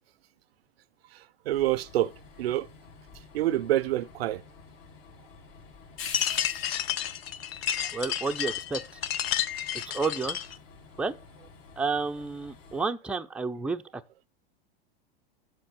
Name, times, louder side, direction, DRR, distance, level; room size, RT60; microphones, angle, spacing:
Train, 1.5-12.8, left 5 dB, 45° left, 1.9 m, -49 dB
voice 1, 1.5-2.1 2.4-2.7 3.3-4.4, right 14 dB, 85° right, 0.5 m, -26 dB
sound 1, 6.0-10.6, left 10 dB, 80° left, 0.8 m, -31 dB
voice 2, 7.9-8.8 9.9-10.4 11.0-11.1 11.8-14.0, right 4 dB, 5° right, 0.5 m, -30 dB
7.6 x 5.4 x 6.6 m
hypercardioid pair, 110°, 30 cm